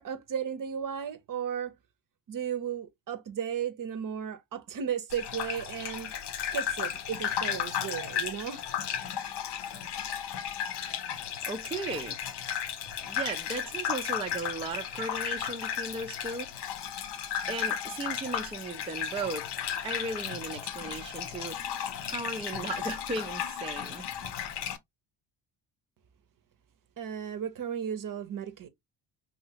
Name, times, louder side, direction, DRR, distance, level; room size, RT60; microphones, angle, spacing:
voice 1, 0.0-1.7 2.3-6.1 6.5-8.7 27.0-28.7, right 8 dB, 40° right, 0.7 m, -35 dB
Gurgling / Bathtub (filling or washing), 5.1-24.8, left 9 dB, 60° left, 0.7 m, -34 dB
voice 2, 11.1-12.2 13.0-16.7 17.5-19.5 19.8-21.6 22.0-24.1, right 3 dB, 15° right, 0.4 m, -36 dB
3.1 x 2.8 x 2.7 m
supercardioid pair, 85°, 49 cm